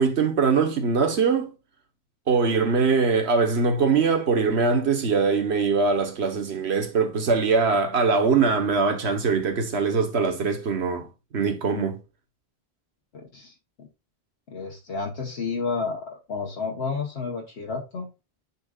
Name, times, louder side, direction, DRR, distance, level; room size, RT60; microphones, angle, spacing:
voice 1, 0.0-1.5 2.3-11.1 11.3-12.0, right 5 dB, 80° right, 1.5 m, -22 dB
voice 2, 13.1-13.9 14.5-18.1, left 4 dB, 80° left, 1.3 m, -31 dB
9.3 x 4.5 x 2.4 m
omnidirectional pair, 1.1 m